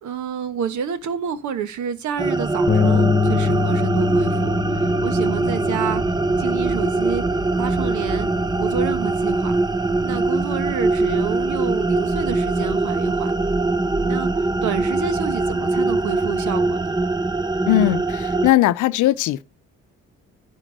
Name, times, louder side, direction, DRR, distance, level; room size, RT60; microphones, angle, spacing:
voice 1, 0.0-6.0 6.4-7.2 7.6-8.3 8.6-9.6 10.0-13.3 14.0-16.9, right 8 dB, 75° right, 1.4 m, -29 dB
sound 1, 2.2-18.5, right 3 dB, 15° right, 0.7 m, -22 dB
Bass guitar, 2.7-8.9, left 6 dB, 30° left, 1.2 m, -25 dB
voice 2, 17.7-19.4, left 14 dB, 80° left, 0.7 m, -19 dB
10.0 x 4.6 x 7.5 m
cardioid pair, 90°, 30 cm